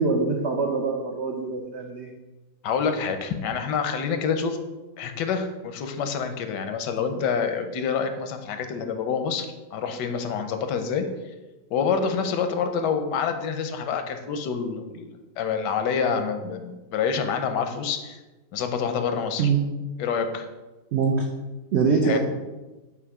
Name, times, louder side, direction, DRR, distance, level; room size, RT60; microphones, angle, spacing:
voice 1, 0.0-2.1 19.4-19.6 20.9-21.3 21.7-22.2, right 5 dB, 80° right, 2 dB, 0.6 m, -23 dB
voice 2, 2.6-4.6 5.0-11.3 11.7-18.2 18.5-19.5 20.0-20.5 22.0-22.2, left 6 dB, 85° left, 7 dB, 1.3 m, -27 dB
7.2 x 2.9 x 4.7 m, 1.1 s
omnidirectional pair, 1.8 m